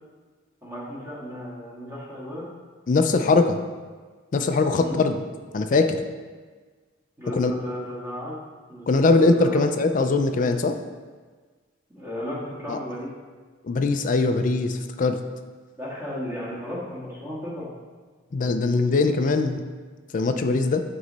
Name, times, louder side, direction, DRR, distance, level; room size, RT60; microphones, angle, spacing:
voice 1, 0.6-2.5 4.7-5.0 7.2-8.4 8.7-9.6 11.9-13.1 15.8-17.7, equal, 15° right, -7 dB, 1.6 m, -34 dB
voice 2, 2.9-3.6 4.3-5.2 5.5-6.0 7.3-7.5 8.9-10.8 12.7-12.8 13.6-15.2 18.3-19.6 20.1-20.8, left 3 dB, 40° left, 7 dB, 0.4 m, -21 dB
9.0 x 3.1 x 4.0 m, 1.4 s
head